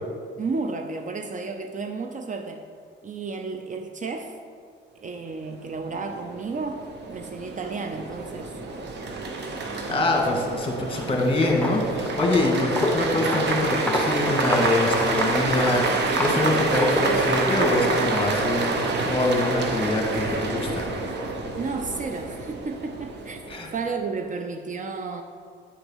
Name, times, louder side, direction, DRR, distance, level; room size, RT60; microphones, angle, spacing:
voice 1, 0.4-2.6 3.0-4.4 5.0-8.6 21.6-23.4 23.7-25.2, right 4 dB, 40° right, 6 dB, 0.6 m, -32 dB
sound 1, 5.7-23.9, right 3 dB, 60° right, 1.0 m, -28 dB
voice 2, 9.9-20.8 23.5-23.7, left 2 dB, 25° left, 0 dB, 1.6 m, -25 dB
Walk footsteps, 10.9-11.2 11.5-17.5, left 1 dB, 5° left, 1.0 m, -29 dB
9.1 x 4.0 x 5.4 m, 2.1 s
cardioid pair, 90°, 20 cm